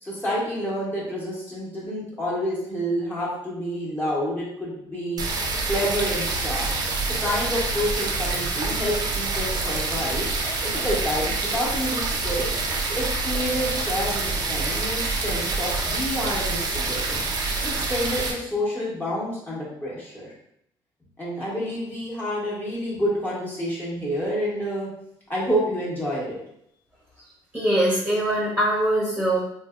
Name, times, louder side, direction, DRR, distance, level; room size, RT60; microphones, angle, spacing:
voice 1, 0.0-5.2 5.7-6.7 7.2-10.3 10.6-12.5 12.9-17.2 17.6-20.3 21.2-24.9 25.3-26.4, equal, 20° left, -7 dB, 1.0 m, -28 dB
sound 1, 5.2-18.3, right 3 dB, 45° right, 0.6 m, -26 dB
voice 2, 27.5-29.4, right 1 dB, 5° right, -7 dB, 0.9 m, -22 dB
3.5 x 2.6 x 2.4 m, 0.75 s
cardioid pair, 140°, 9 cm